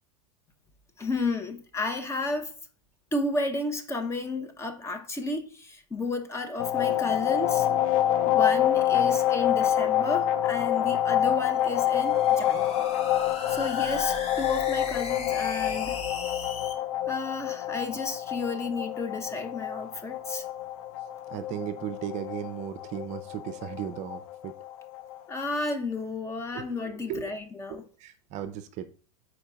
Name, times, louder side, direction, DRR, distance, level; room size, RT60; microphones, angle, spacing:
voice 1, 1.0-2.5 3.1-7.7 8.2-12.9 13.5-16.4 17.1-20.4 25.3-27.9, left 2 dB, 15° left, 0.8 m, -32 dB
sound 1, 6.6-25.2, left 11 dB, 65° left, 0.6 m, -27 dB
sound 2, 11.3-16.7, left 4 dB, 30° left, 1.2 m, -39 dB
voice 2, 21.3-24.5 26.5-27.3 27.7-28.8, right 9 dB, 35° right, 0.6 m, -36 dB
4.6 x 4.4 x 5.1 m
hypercardioid pair, 120°, 19 cm